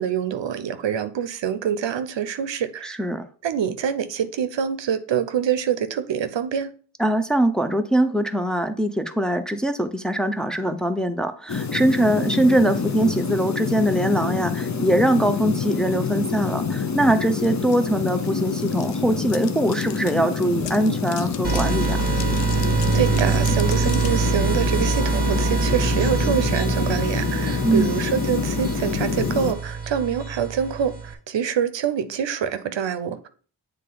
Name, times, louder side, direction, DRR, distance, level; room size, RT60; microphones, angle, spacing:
voice 1, 0.0-3.0 3.4-6.7 22.9-33.3, right 8 dB, 75° right, 0.7 m, -25 dB
voice 2, 2.8-3.3 7.0-22.1 27.6-28.0, right 1 dB, ahead, 0.6 m, -22 dB
sound 1, 11.5-29.5, left 5 dB, 40° left, 0.7 m, -27 dB
sound 2, 17.4-17.5 17.7-24.2, left 9 dB, 80° left, 0.6 m, -39 dB
sound 3, 21.4-31.1, right 5 dB, 20° right, 1.4 m, -25 dB
7.5 x 3.3 x 3.9 m
cardioid pair, 55°, 44 cm